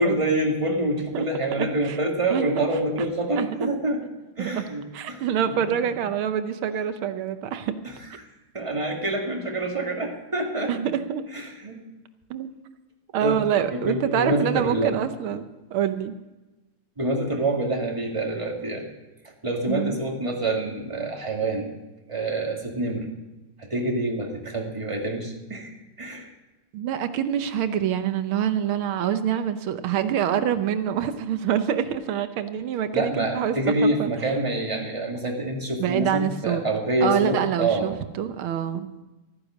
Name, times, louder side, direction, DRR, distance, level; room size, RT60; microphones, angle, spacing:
voice 1, 0.0-4.0 4.4-6.0 7.8-7.9 8.5-10.9 11.3-11.8 13.2-13.4 13.7-14.9 17.0-18.9 19.4-21.7 22.1-23.1 23.6-25.7 26.0-26.3 32.9-37.9, right 1 dB, 15° right, 0 dB, 1.9 m, -26 dB
voice 2, 1.5-2.0 2.3-2.5 3.0-3.1 3.3-3.7 4.4-4.6 4.9-7.8 10.7-11.2 12.3-12.5 13.1-16.1 19.7-20.0 26.7-33.5 33.8-34.1 35.8-36.6 37.0-38.9, right 9 dB, 75° right, 10 dB, 1.6 m, -26 dB
14.0 x 9.7 x 6.3 m, 1.1 s
omnidirectional pair, 2.4 m